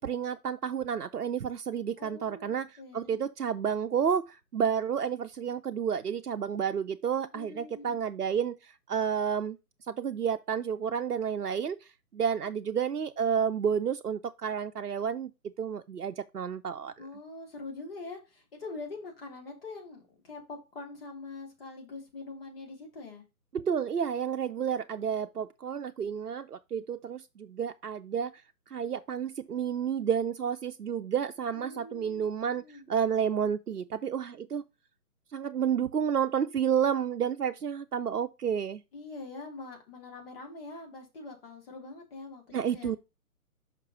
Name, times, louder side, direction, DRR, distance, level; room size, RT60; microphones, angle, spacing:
voice 1, 0.0-9.6 9.9-16.9 23.5-28.4 28.7-34.6 35.3-38.8 42.5-43.0, right 7 dB, 85° right, 0.6 m, -31 dB
voice 2, 2.0-3.2 7.3-8.0 17.0-23.2 31.5-32.9 38.9-42.9, left 3 dB, 40° left, 3.0 m, -44 dB
5.8 x 4.6 x 5.0 m
figure-of-eight pair, 135°, 45 cm